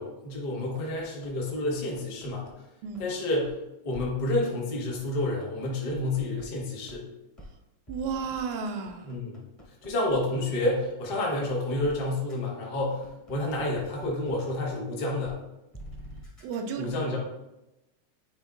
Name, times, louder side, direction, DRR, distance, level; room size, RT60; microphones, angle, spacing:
voice 1, 0.0-2.5 3.0-3.6 3.8-7.1 9.0-9.4 9.8-15.4 16.8-17.2, left 2 dB, 75° left, -3 dB, 0.5 m, -29 dB
sound 1, 1.0-2.5 2.9-3.0 3.4-3.5 3.9-4.1 4.4-4.5 4.9-6.4 6.9-7.0 7.4-7.5 7.9-10.4 10.8-10.9 11.3-11.4 11.8-11.9 12.3-12.4 12.8-14.3 14.7-14.8 15.2-15.3 15.7-16.6, right 1 dB, 20° left, 1.0 m, -46 dB
voice 2, 7.9-9.2 16.4-17.0, right 5 dB, 85° right, 5 dB, 2.1 m, -33 dB
8.9 x 4.5 x 2.4 m, 0.93 s
omnidirectional pair, 3.4 m